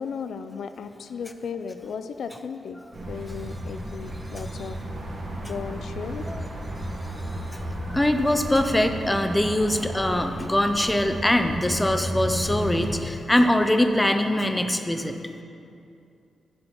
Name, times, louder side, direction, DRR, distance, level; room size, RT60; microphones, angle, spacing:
voice 1, 0.0-2.8 3.1-4.8 5.5-6.3, left 6 dB, 65° left, 9 dB, 0.4 m, -35 dB
sound 1, 2.9-13.0, right 1 dB, 40° right, 1.3 m, -33 dB
voice 2, 7.2-7.6 7.9-15.2, left 1 dB, 10° left, 6 dB, 0.5 m, -23 dB
8.0 x 7.0 x 7.0 m, 2.6 s
wide cardioid pair, 170°, 0 cm